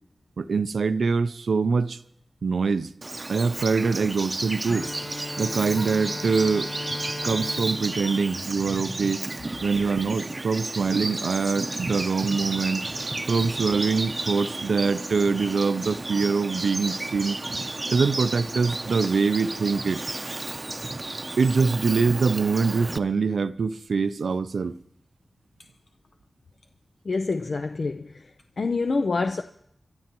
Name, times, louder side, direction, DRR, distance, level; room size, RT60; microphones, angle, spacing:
voice 1, 0.4-2.0 2.4-2.9 3.3-4.9 5.4-6.7 7.2-9.2 9.6-12.8 13.3-17.4 17.9-20.0 21.4-24.8, right 4 dB, 85° right, 0.5 m, -24 dB
Bird vocalization bird call bird song, 3.0-23.0, right 2 dB, 35° right, 0.7 m, -32 dB
Bowed string instrument, 4.6-9.5, left 2 dB, 35° left, 0.9 m, -38 dB
voice 2, 27.1-28.2 28.6-29.4, left 3 dB, 65° left, 0.5 m, -26 dB
27.5 x 13.0 x 3.0 m
wide cardioid pair, 65°, 0 cm